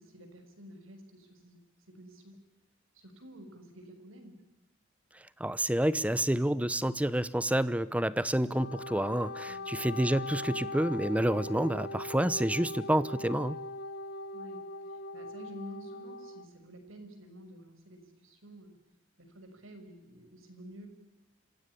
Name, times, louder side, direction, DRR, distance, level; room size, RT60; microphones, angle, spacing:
voice 1, 0.0-1.6 1.9-2.4 2.9-4.4 9.5-9.7 14.3-18.7 19.2-20.9, equal, 80° right, 7 dB, 6.1 m, -50 dB
voice 2, 5.4-13.6, right 1 dB, 5° right, 16 dB, 0.8 m, -29 dB
Wind instrument woodwind instrument, 8.4-16.5, left 1 dB, 50° left, 1.1 m, -40 dB
28.0 x 17.0 x 9.9 m, 0.99 s
head